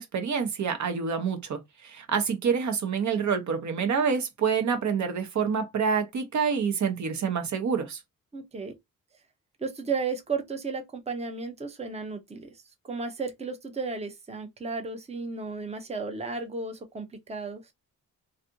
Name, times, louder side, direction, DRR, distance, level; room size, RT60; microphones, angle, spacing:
voice 1, 0.0-8.0, right 6 dB, 50° right, 0.9 m, -27 dB
voice 2, 8.3-8.7 9.6-12.5 12.8-17.6, right 4 dB, 20° right, 0.7 m, -34 dB
3.2 x 2.7 x 2.6 m
cardioid pair, 95°, 35 cm